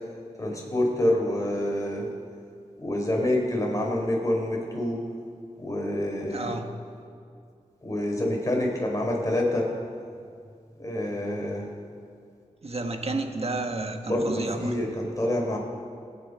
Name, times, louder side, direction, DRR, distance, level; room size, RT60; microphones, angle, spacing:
voice 1, 0.4-2.1 2.8-5.0 5.6-6.5 7.8-9.6 10.8-11.7 14.1-15.6, left 1 dB, 25° left, -1 dB, 4.6 m, -27 dB
voice 2, 6.3-6.8 12.6-14.7, right 2 dB, 50° right, 5 dB, 1.5 m, -31 dB
27.0 x 9.6 x 5.5 m, 2.3 s
wide cardioid pair, 75°, 13 cm